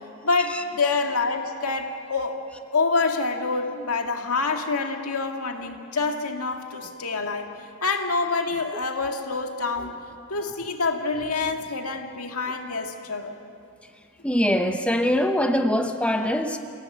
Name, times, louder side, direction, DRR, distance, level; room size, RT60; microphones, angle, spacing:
voice 1, 0.2-2.4 2.7-7.5 7.8-10.0 10.3-13.4, left 4 dB, 90° left, 4 dB, 2.0 m, -26 dB
voice 2, 14.2-16.6, equal, 5° left, 5 dB, 0.9 m, -23 dB
27.5 x 17.0 x 7.9 m, 2.4 s
head